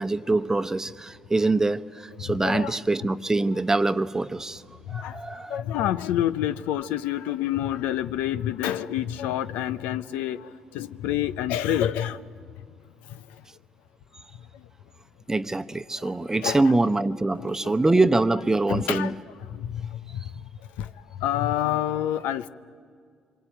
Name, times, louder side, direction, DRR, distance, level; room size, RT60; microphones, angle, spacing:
voice 1, 0.0-4.6 4.9-5.6 15.3-19.1, right 2 dB, 20° right, 0.9 m, -24 dB
voice 2, 2.3-2.8 3.5-3.6 4.9-5.2 5.5-12.2 13.1-13.2 16.0-16.1 16.4-16.8 17.4-17.7 18.7-19.2 19.5-20.2 20.8-20.9 21.2-22.5, left 11 dB, 75° left, 0.6 m, -28 dB
25.5 x 23.5 x 9.1 m
hypercardioid pair, 55°, 3 cm